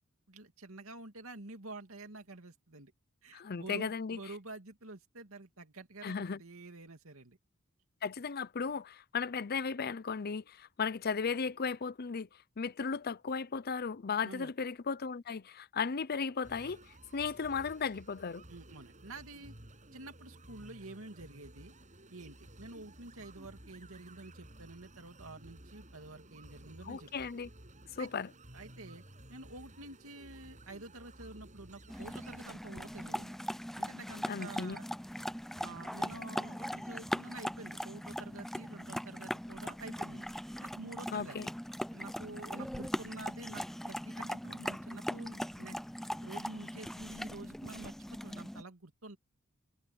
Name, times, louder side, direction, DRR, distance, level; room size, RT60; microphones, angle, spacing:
voice 1, 0.3-2.9 3.2-7.4 14.2-14.5 18.5-19.5 19.9-21.7 22.1-27.1 28.0-28.1 28.5-29.0 29.3-33.4 33.8-34.8 35.6-40.3 40.6-41.4 41.9-45.8 46.2-47.9 48.2-49.2, right 2 dB, 80° right, 2.7 m, -48 dB
voice 2, 3.3-4.2 6.0-6.4 8.0-12.3 12.6-16.8 17.1-18.4 26.8-27.5 28.0-28.3 34.3-34.8 41.1-41.5, left 5 dB, 50° left, 0.6 m, -35 dB
sound 1, 16.4-32.4, right 1 dB, 35° right, 7.7 m, -55 dB
sound 2, 31.9-48.6, equal, ahead, 0.6 m, -40 dB
head